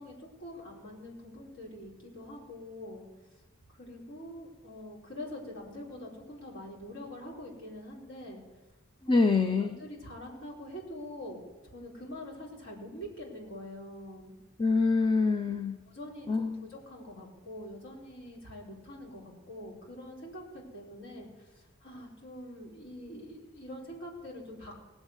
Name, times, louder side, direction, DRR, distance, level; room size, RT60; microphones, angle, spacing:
voice 1, 0.0-3.0 3.7-8.4 9.1-11.4 11.7-14.3 15.9-21.3 21.5-24.7, left 1 dB, 60° left, -4 dB, 4.5 m, -44 dB
voice 2, 9.1-9.8 14.6-15.8 16.3-16.6, left 4 dB, 20° left, 6 dB, 0.5 m, -25 dB
18.5 x 8.1 x 8.1 m, 1.2 s
head